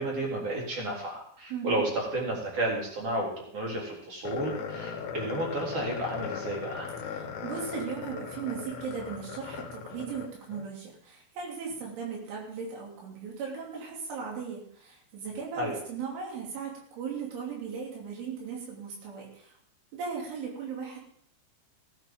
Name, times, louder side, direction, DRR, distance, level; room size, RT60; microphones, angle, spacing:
voice 1, 0.0-6.9 15.6-15.8, right 1 dB, 35° right, -3 dB, 4.1 m, -32 dB
voice 2, 1.5-1.8 7.1-19.5 19.9-21.0, right 6 dB, 80° right, -3 dB, 5.4 m, -37 dB
sound 1, 4.3-10.7, left 6 dB, 70° left, 3.5 m, -38 dB
17.5 x 11.0 x 3.8 m, 0.65 s
omnidirectional pair, 5.5 m